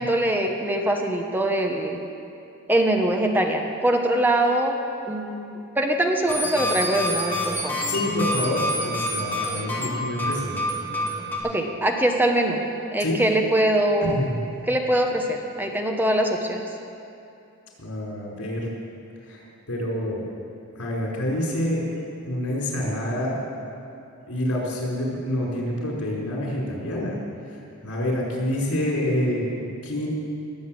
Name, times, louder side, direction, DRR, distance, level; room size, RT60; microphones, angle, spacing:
voice 1, 0.0-2.0 2.7-4.7 5.1-5.4 5.7-7.8 11.4-12.6 12.9-14.2 14.7-16.6, right 1 dB, 10° right, 2 dB, 1.0 m, -23 dB
sound 1, 6.3-11.4, left 1 dB, 10° left, 2.3 m, -27 dB
voice 2, 7.9-10.6 13.0-13.2 14.0-14.4 17.8-18.7 19.2-19.4 19.7-20.2 20.8-21.9 22.3-23.4 24.2-27.2 27.8-30.1, left 1 dB, 85° left, -3 dB, 4.4 m, -27 dB
20.5 x 8.0 x 7.6 m, 2.7 s
head